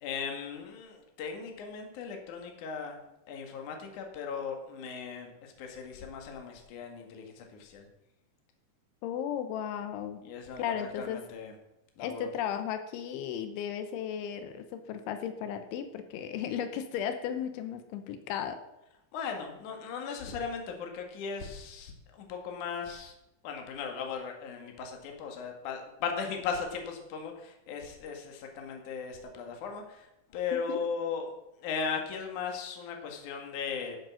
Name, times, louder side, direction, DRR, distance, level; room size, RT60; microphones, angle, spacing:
voice 1, 0.0-3.0 3.3-7.9 10.2-11.5 12.0-12.3 19.1-23.1 23.4-30.1 30.3-31.3 31.6-34.0, left 6 dB, 55° left, 3 dB, 2.7 m, -37 dB
voice 2, 9.0-10.2 10.6-11.2 12.0-18.6 30.7-30.8, left 9 dB, 85° left, 9 dB, 3.3 m, -35 dB
13.0 x 7.7 x 6.3 m, 0.90 s
omnidirectional pair, 5.4 m